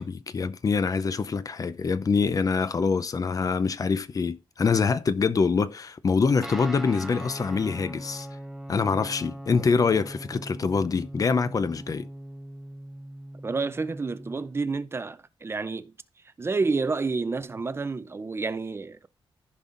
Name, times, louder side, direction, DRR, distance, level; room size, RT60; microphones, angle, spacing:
voice 1, 0.0-8.3 8.7-12.1, left 5 dB, 40° left, 0.6 m, -25 dB
Guitar, 6.4-14.5, right 1 dB, ahead, 1.0 m, -40 dB
voice 2, 13.4-15.9 16.4-19.1, right 4 dB, 25° right, 0.5 m, -29 dB
14.5 x 5.5 x 2.5 m
wide cardioid pair, 140°, 10 cm